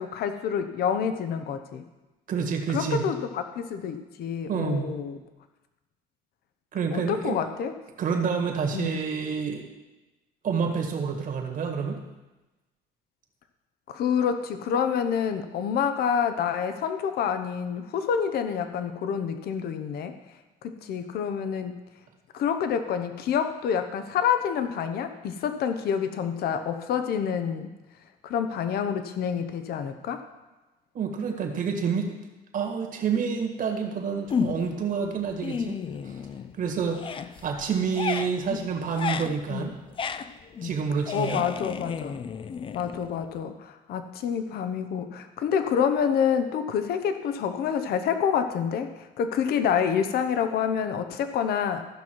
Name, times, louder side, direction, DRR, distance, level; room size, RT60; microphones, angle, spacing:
voice 1, 0.0-1.8 2.7-5.2 6.9-7.7 8.7-8.9 13.9-20.1 20.6-21.8 22.3-27.7 28.2-30.2 41.1-42.2 42.7-51.9, left 7 dB, 65° left, 8 dB, 0.8 m, -27 dB
voice 2, 2.3-3.1 4.5-4.9 6.7-7.4 8.0-9.6 10.4-12.0 30.9-32.2 32.5-35.8 36.0-36.2 36.6-39.7 40.6-41.4, right 6 dB, 55° right, 3 dB, 1.7 m, -28 dB
sound 1, 34.3-34.9 35.2-36.6 36.9-43.4, left 6 dB, 30° left, 0.4 m, -33 dB
14.5 x 5.8 x 4.6 m, 1.1 s
cardioid pair, 110°, 17 cm